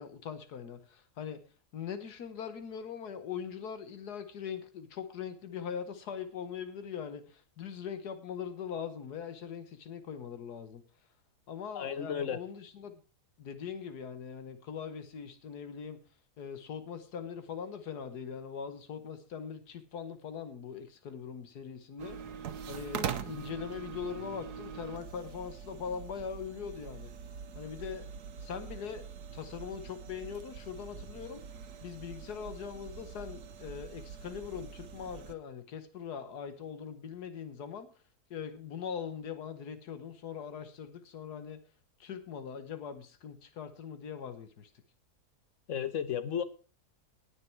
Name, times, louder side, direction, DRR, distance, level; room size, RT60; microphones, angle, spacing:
voice 1, 0.0-1.4 1.7-10.8 11.5-13.0 13.4-16.0 16.4-22.2 22.7-27.1 27.6-28.1 28.4-29.1 29.3-31.4 31.8-37.9 38.3-41.6 42.0-44.7, left 7 dB, 85° left, 1.7 m, -41 dB
voice 2, 11.7-12.4 45.7-46.4, left 8 dB, 55° left, 1.2 m, -33 dB
sound 1, 22.0-35.3, right 7 dB, 85° right, 1.4 m, -43 dB
19.5 x 6.7 x 4.5 m
omnidirectional pair, 1.7 m